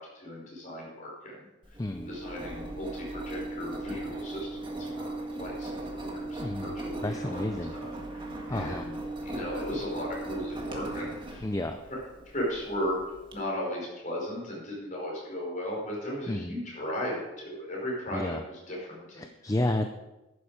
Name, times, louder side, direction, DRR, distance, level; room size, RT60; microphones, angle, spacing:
voice 1, 0.0-1.3 2.0-5.1 5.4-7.4 7.7-8.2 8.5-9.0 9.2-11.4 11.9-12.0 12.2-13.0 13.3-19.2, equal, 40° left, -3 dB, 5.2 m, -36 dB
Engine, 1.6-13.3, right 2 dB, 25° right, 1.8 m, -38 dB
voice 2, 1.8-2.1 6.4-6.7 7.0-7.7 8.5-8.9 11.4-11.8 16.3-16.6 18.1-18.4 19.2-19.9, left 1 dB, 15° left, 7 dB, 0.5 m, -31 dB
11.5 x 9.8 x 5.1 m, 1.0 s
head